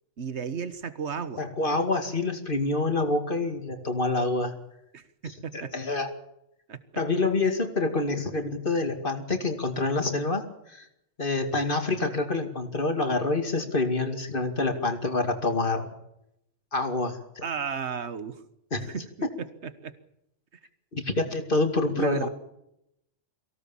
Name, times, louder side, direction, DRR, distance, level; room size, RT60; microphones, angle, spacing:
voice 1, 0.2-1.5 4.9-5.7 6.7-6.8 17.4-18.4 18.9-19.1 19.8-19.9 22.0-22.3, right 6 dB, 65° right, 12 dB, 1.7 m, -33 dB
voice 2, 1.4-4.5 5.2-6.1 7.0-10.9 11.2-15.9 16.7-17.4 18.7-18.9 20.9-22.3, left 3 dB, 45° left, 6 dB, 2.6 m, -27 dB
24.0 x 17.0 x 7.2 m, 0.80 s
omnidirectional pair, 1.2 m